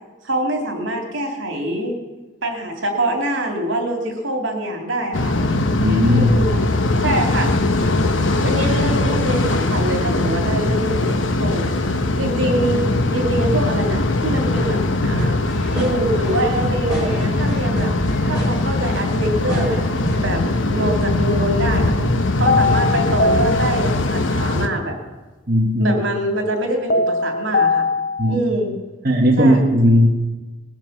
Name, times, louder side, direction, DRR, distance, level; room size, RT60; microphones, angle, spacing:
voice 1, 0.2-2.0 2.4-5.4 6.0-6.5 7.0-7.6 8.4-11.6 12.2-15.4 15.7-17.9 18.3-19.9 20.2-21.9 22.4-25.0 25.8-27.9 28.3-28.8 29.4-29.6, right 1 dB, 70° right, 2 dB, 2.8 m, -24 dB
sound 1, 5.1-24.7, left 2 dB, 70° left, 1.1 m, -20 dB
voice 2, 5.8-6.3 22.4-22.6 25.5-25.9 28.2-28.4 29.0-30.1, equal, 45° right, -2 dB, 1.6 m, -16 dB
sound 2, 15.2-20.4, equal, 20° left, 5.1 m, -29 dB
sound 3, 22.5-24.3 26.9-28.4, left 3 dB, 45° left, 0.6 m, -21 dB
20.5 x 7.3 x 7.2 m, 1.2 s
head